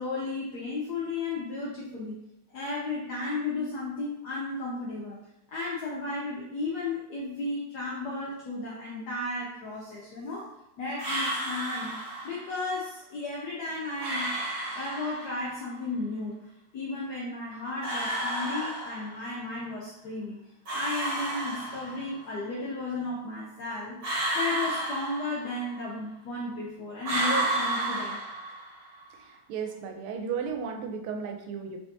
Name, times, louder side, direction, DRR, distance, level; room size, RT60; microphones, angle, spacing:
voice 1, 0.0-2.2 2.5-5.2 5.5-10.5 10.8-11.9 12.2-14.3 14.7-16.4 16.7-20.4 20.7-24.0 24.3-28.2, left 2 dB, 75° left, -4 dB, 0.9 m, -34 dB
sound 1, 11.0-12.5 14.0-15.5 17.8-19.4 20.7-22.2 24.0-25.8 27.0-28.9, right 1 dB, 45° right, 1.2 m, -31 dB
voice 2, 29.2-31.8, right 6 dB, 85° right, 4 dB, 1.5 m, -34 dB
3.4 x 3.3 x 2.6 m, 0.85 s
omnidirectional pair, 2.4 m